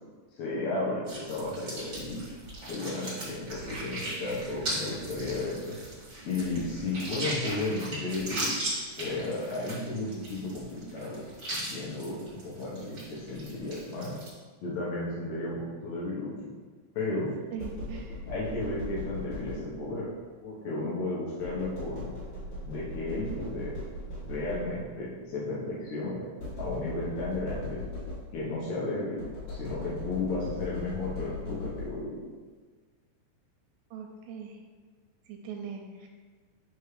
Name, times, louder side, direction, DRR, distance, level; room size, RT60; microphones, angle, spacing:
voice 1, 0.4-2.2 2.7-5.8 6.2-8.5 9.0-11.2 11.5-14.2 14.6-16.5 16.9-17.3 18.3-20.1 20.4-22.1 22.6-23.8 24.2-26.3 26.6-27.8 28.3-29.2 29.5-32.2, left 2 dB, 80° left, -6 dB, 1.6 m, -33 dB
sound 1, 1.1-14.3, right 1 dB, 45° right, 0.9 m, -38 dB
voice 2, 17.5-18.2 33.9-34.6 35.3-36.1, right 6 dB, 85° right, 2 dB, 2.6 m, -40 dB
sound 2, 17.6-20.0 21.4-25.0 26.4-28.6 29.2-32.2, left 2 dB, 50° left, 2.4 m, -39 dB
9.9 x 3.6 x 3.2 m, 1.5 s
omnidirectional pair, 4.9 m